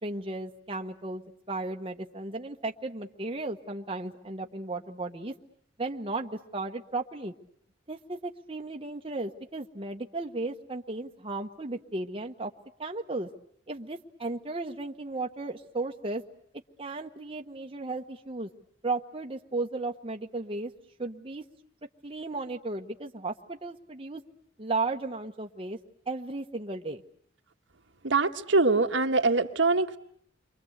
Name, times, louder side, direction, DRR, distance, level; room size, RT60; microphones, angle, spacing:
voice 1, 0.0-5.3 5.8-7.3 7.9-12.5 12.8-13.3 13.7-16.2 16.8-18.5 18.8-20.7 21.0-21.4 22.0-24.2 24.6-25.8 26.1-27.0, right 2 dB, 30° right, 3 dB, 1.2 m, -35 dB
voice 2, 28.0-30.0, right 3 dB, 90° right, 5 dB, 1.6 m, -23 dB
29.5 x 24.0 x 8.1 m, 0.65 s
head